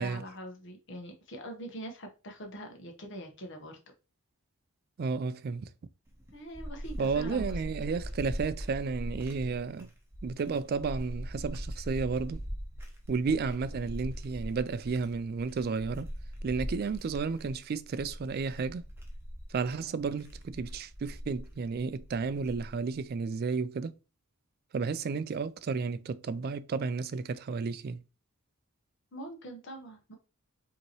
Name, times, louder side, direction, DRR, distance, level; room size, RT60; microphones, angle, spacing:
voice 1, 0.0-3.8 6.3-7.6 29.1-30.2, right 1 dB, 55° left, 1.1 m, -43 dB
voice 2, 5.0-5.7 7.0-9.9 10.2-12.4 13.1-16.1 16.4-18.8 19.5-23.9 24.7-28.0, right 5 dB, 45° right, 0.3 m, -32 dB
sound 1, 6.1-22.9, equal, 10° right, 0.8 m, -41 dB
5.3 x 2.9 x 3.0 m
head